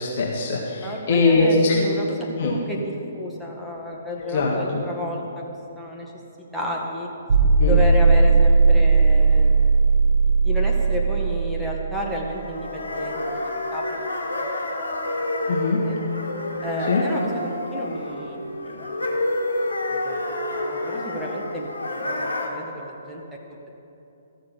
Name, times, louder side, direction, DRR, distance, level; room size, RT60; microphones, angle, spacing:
voice 1, 0.0-1.8 2.4-2.5 4.2-4.8 7.6-7.8 15.5-15.8 16.9-17.0, left 3 dB, 50° left, -4 dB, 1.8 m, -21 dB
voice 2, 0.8-6.1 6.5-7.1 7.7-9.8 10.4-14.5 15.1-15.3 15.8-16.0 16.6-18.8 19.9-23.2 23.5-23.7, left 1 dB, ahead, -3 dB, 1.8 m, -32 dB
sound 1, 7.3-12.3, right 4 dB, 60° right, 1.8 m, -17 dB
sound 2, 12.2-22.5, left 1 dB, 80° left, 1.7 m, -29 dB
14.0 x 6.6 x 7.0 m, 2.8 s
figure-of-eight pair, 125°, 0 cm